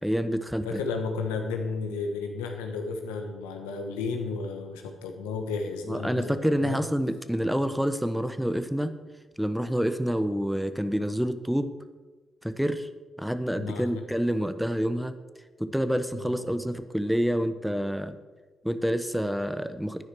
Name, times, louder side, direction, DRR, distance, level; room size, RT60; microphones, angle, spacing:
voice 1, 0.0-0.8 5.9-9.0 9.4-11.7 12.4-12.9 13.2-15.2 15.6-18.2 18.6-20.0, equal, 5° right, 11 dB, 1.0 m, -27 dB
voice 2, 0.6-6.8 13.6-14.0 16.2-16.4, left 4 dB, 90° left, 4 dB, 1.3 m, -33 dB
11.0 x 9.6 x 6.2 m, 1.3 s
hypercardioid pair, 40°, 0 cm